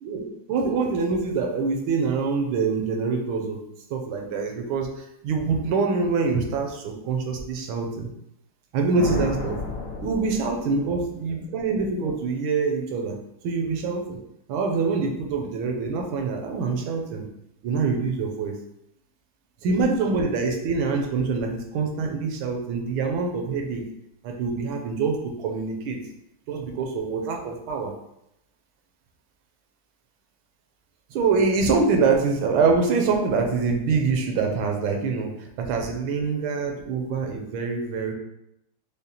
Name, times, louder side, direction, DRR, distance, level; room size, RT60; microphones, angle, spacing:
voice 1, 0.0-3.6 3.9-8.1 8.7-9.6 10.0-13.2 13.4-14.2 14.5-17.3 17.6-18.6 19.6-23.8 24.2-26.0 26.5-27.9 31.1-38.1, right 4 dB, 80° right, 2 dB, 1.4 m, -25 dB
sound 1, 9.0-11.1, left 4 dB, 70° left, 1.1 m, -31 dB
5.1 x 2.0 x 2.8 m, 0.80 s
omnidirectional pair, 2.2 m